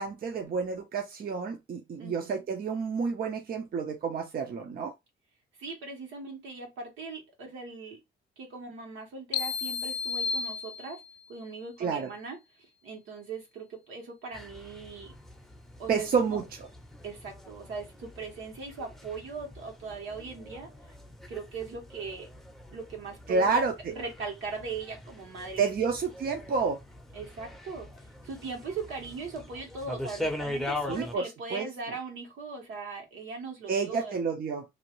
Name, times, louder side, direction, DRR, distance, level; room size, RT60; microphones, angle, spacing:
voice 1, 0.0-4.9 11.8-12.1 15.9-16.4 23.3-23.7 25.6-26.8 30.9-31.7 33.7-34.6, right 5 dB, 50° right, 0.7 m, -29 dB
voice 2, 2.0-2.4 5.6-8.0 8.4-11.0 11.3-12.4 12.8-15.2 15.8-16.4 17.0-20.7 21.3-22.3 22.7-23.6 23.9-25.6 27.1-27.9 28.2-34.2, right 4 dB, 80° right, 1.5 m, -39 dB
sound 1, 9.3-11.3, left 5 dB, 65° left, 0.4 m, -32 dB
sound 2, 14.3-31.2, left 1 dB, ahead, 0.7 m, -42 dB
2.8 x 2.4 x 3.0 m
cardioid pair, 90°, 20 cm